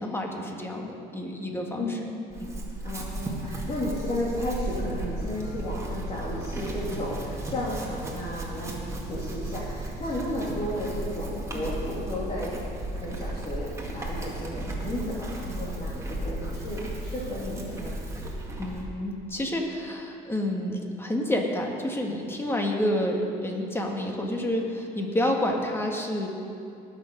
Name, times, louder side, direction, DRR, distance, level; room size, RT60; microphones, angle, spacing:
voice 1, 0.0-2.0 2.4-2.6 18.6-26.3, left 1 dB, 15° left, 1 dB, 1.8 m, -29 dB
voice 2, 1.8-2.1 2.8-12.6 13.0-18.0, left 1 dB, 35° left, -8 dB, 2.9 m, -33 dB
Chewing mastication / Livestock farm animals working animals, 2.3-18.9, right 1 dB, 15° right, 2.1 m, -34 dB
19.5 x 6.8 x 5.5 m, 2.6 s
cardioid pair, 110°, 17 cm